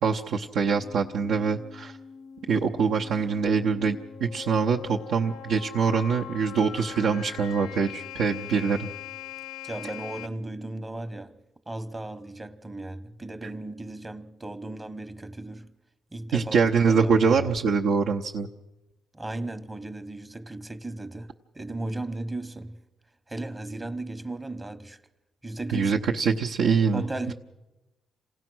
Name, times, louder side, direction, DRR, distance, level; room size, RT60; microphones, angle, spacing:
voice 1, 0.0-2.0 2.5-8.9 16.3-18.5 25.7-27.0 27.3-27.4, right 5 dB, 80° right, 0.8 m, -24 dB
sound 1, 0.6-10.3, left 9 dB, 90° left, 0.6 m, -42 dB
voice 2, 9.7-11.4 11.7-15.7 16.1-16.6 16.9-17.5 19.1-22.8 23.3-25.0 25.4-25.9 26.9-27.3, right 2 dB, 20° right, 0.9 m, -36 dB
27.5 x 17.0 x 6.2 m
cardioid pair, 90°, 0 cm